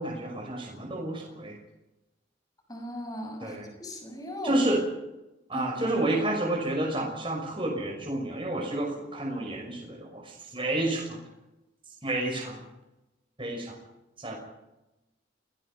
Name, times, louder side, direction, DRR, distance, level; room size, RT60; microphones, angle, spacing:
voice 1, 0.0-1.6 3.4-3.7 4.4-4.8 5.5-11.2 12.0-12.6 13.4-13.7 14.2-14.4, right 1 dB, 25° right, 0 dB, 5.9 m, -30 dB
voice 2, 2.7-4.6 5.5-5.9, equal, 20° left, 3 dB, 6.6 m, -38 dB
29.5 x 19.0 x 5.5 m, 1.0 s
head